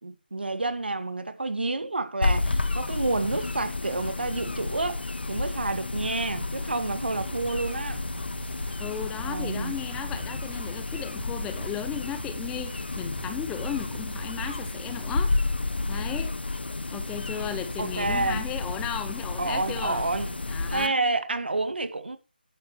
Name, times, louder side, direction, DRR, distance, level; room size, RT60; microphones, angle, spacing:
voice 1, 0.0-8.0 9.2-9.7 17.8-18.4 19.4-20.4 20.7-22.2, right 3 dB, 75° right, 2.1 m, -29 dB
sound 1, 2.2-20.9, left 3 dB, 75° left, 1.2 m, -31 dB
sound 2, 7.2-15.2, right 2 dB, 20° right, 5.6 m, -43 dB
voice 2, 8.8-15.3 15.9-16.3 16.9-20.0 20.5-21.0, left 10 dB, 10° left, 0.8 m, -35 dB
11.5 x 10.5 x 3.3 m
figure-of-eight pair, 155°, 6 cm